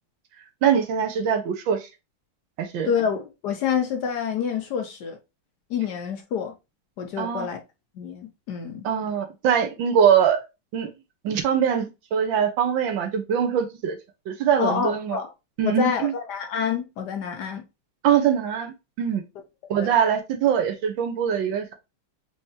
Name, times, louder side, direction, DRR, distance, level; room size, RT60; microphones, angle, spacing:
voice 1, 0.6-1.9 2.6-2.9 7.2-7.5 8.8-10.4 10.7-10.9 11.2-14.0 14.3-15.2 15.6-16.1 18.0-19.2 19.7-21.7, right 8 dB, 70° right, 1.5 m, -22 dB
voice 2, 2.8-5.2 5.7-6.5 7.0-7.6 8.0-8.8 14.6-15.3 15.6-17.6 19.8-19.9, left 7 dB, 65° left, 1.1 m, -27 dB
4.8 x 3.1 x 2.7 m
omnidirectional pair, 2.4 m